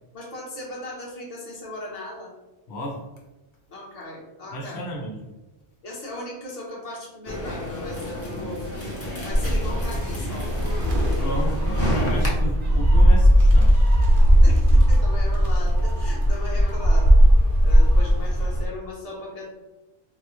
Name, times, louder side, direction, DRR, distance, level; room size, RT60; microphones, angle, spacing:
voice 1, 0.1-2.3 3.7-4.8 5.8-8.6 9.2-11.3 14.4-17.1 17.6-19.5, left 1 dB, 40° left, -4 dB, 0.9 m, -37 dB
voice 2, 2.7-3.1 4.5-5.3 8.3-8.5 11.2-13.9, equal, 80° left, -1 dB, 0.9 m, -33 dB
sound 1, 7.2-12.3, equal, 20° left, 0.5 m, -31 dB
Gull seagull, 9.3-18.7, equal, 55° right, 0.8 m, -18 dB
3.9 x 2.1 x 3.0 m, 1.1 s
omnidirectional pair, 1.1 m